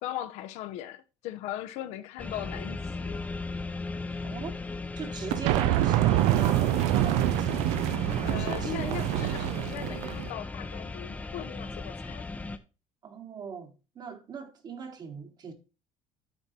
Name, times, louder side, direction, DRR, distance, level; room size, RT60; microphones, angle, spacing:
voice 1, 0.0-3.2 8.2-12.3, left 12 dB, 75° left, 0.8 m, -39 dB
sound 1, 2.2-12.6, left 3 dB, 15° left, 0.6 m, -36 dB
voice 2, 5.0-7.7 8.3-9.0 13.0-15.5, right 6 dB, 35° right, 1.4 m, -40 dB
sound 2, 5.3-10.3, right 15 dB, 85° right, 0.4 m, -26 dB
8.9 x 4.7 x 4.2 m
cardioid pair, 130°, 11 cm